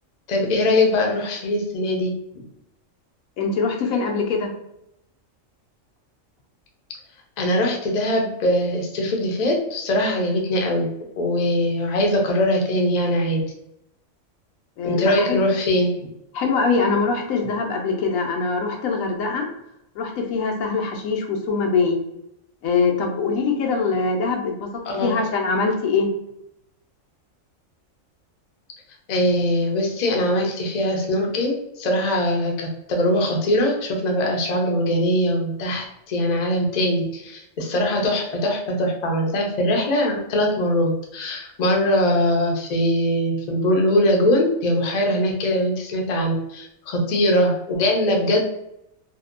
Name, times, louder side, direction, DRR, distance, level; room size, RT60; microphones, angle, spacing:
voice 1, 0.3-2.1 7.4-10.9 11.2-13.4 14.8-15.9 24.8-25.2 29.1-48.4, left 1 dB, 55° left, 0 dB, 0.4 m, -21 dB
voice 2, 3.4-4.5 14.8-15.4 16.3-19.5 20.0-22.0 22.6-24.7 25.0-26.1, left 4 dB, 90° left, 2 dB, 1.0 m, -23 dB
2.7 x 2.1 x 2.4 m, 0.81 s
omnidirectional pair, 1.4 m